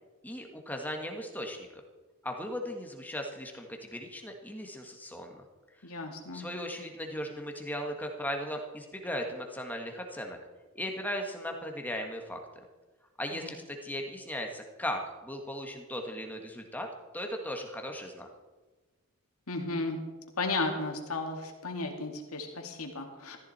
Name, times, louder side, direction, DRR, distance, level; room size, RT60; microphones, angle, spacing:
voice 1, 0.2-1.7 2.2-5.4 5.8-5.9 6.3-10.4 10.7-12.4 13.2-16.9 17.1-18.3, equal, 10° left, 3 dB, 1.5 m, -37 dB
voice 2, 5.8-6.5 13.3-13.5 19.5-20.0 20.4-23.4, left 3 dB, 80° left, 3 dB, 2.3 m, -34 dB
14.0 x 14.0 x 4.3 m, 1.3 s
head